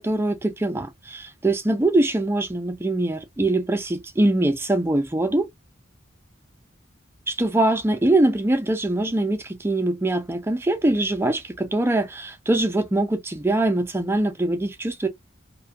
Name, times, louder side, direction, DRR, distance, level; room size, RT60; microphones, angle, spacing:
voice 1, 0.0-5.5 7.3-15.1, right 2 dB, 10° right, 0.3 m, -23 dB
2.6 x 2.1 x 2.4 m
head